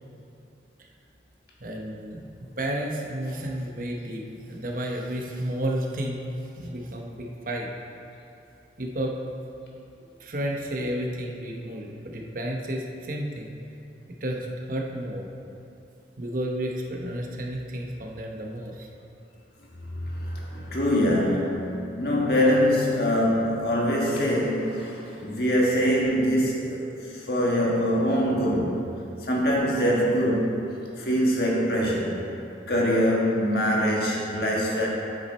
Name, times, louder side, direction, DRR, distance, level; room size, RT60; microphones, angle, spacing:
voice 1, 1.6-4.2 4.5-6.2 6.6-7.7 8.8-9.1 10.2-13.5 14.2-15.3 16.2-18.9, right 1 dB, 50° right, 0 dB, 0.9 m, -31 dB
voice 2, 20.1-26.8 27.1-28.8 29.3-30.5 31.0-32.2 32.7-34.9, equal, 60° left, -3 dB, 1.6 m, -23 dB
9.2 x 7.3 x 4.3 m, 2.8 s
head